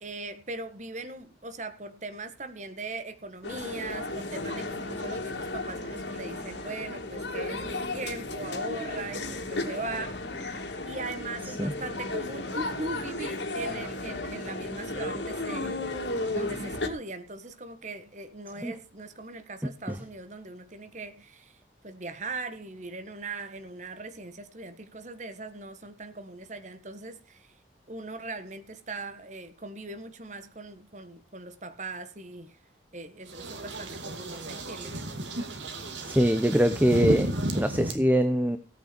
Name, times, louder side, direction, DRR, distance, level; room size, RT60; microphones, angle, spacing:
voice 1, 0.0-10.2 10.8-15.9 16.3-21.6 21.8-27.5 27.9-32.6 32.9-34.9, right 2 dB, 40° right, 1.5 m, -40 dB
sound 1, 3.4-16.9, left 2 dB, 80° left, 3.1 m, -34 dB
sound 2, 33.3-37.9, right 1 dB, 85° right, 2.4 m, -32 dB
voice 2, 36.0-38.6, equal, 10° right, 0.8 m, -23 dB
17.5 x 8.9 x 4.5 m
head